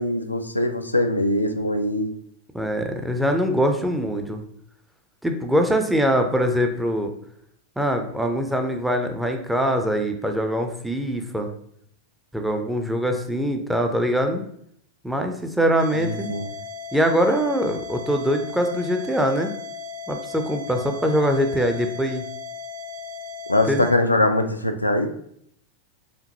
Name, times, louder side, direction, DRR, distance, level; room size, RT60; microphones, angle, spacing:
voice 1, 0.0-2.1 15.9-16.5 23.5-25.1, left 1 dB, 85° left, 6 dB, 0.3 m, -22 dB
voice 2, 2.5-4.4 5.2-7.1 7.8-11.5 12.3-14.4 15.0-16.3 16.9-19.5 20.1-22.2 23.7-23.9, equal, 5° right, 4 dB, 0.5 m, -23 dB
sound 1, 15.8-23.9, left 5 dB, 60° right, 0.5 m, -36 dB
5.0 x 2.6 x 2.8 m, 0.68 s
figure-of-eight pair, 90°, 0 cm